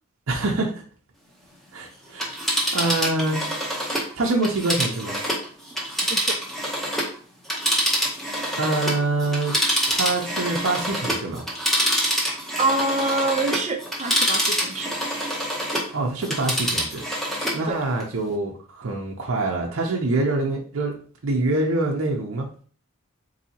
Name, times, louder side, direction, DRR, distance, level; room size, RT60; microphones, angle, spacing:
voice 1, 0.3-0.7 1.7-2.4 2.7-3.4 4.2-5.2 8.6-9.6 9.9-11.4 15.9-17.0 17.5-20.9 21.2-22.5, right 2 dB, 70° right, -1 dB, 0.6 m, -25 dB
Telephone, 2.1-7.1 7.4-15.9 16.2-17.6 18.0-18.1, equal, ahead, 0.7 m, -26 dB
voice 2, 12.6-14.9 17.7-17.8, right 2 dB, 35° right, 5 dB, 0.5 m, -25 dB
4.0 x 2.7 x 2.8 m, 0.43 s
head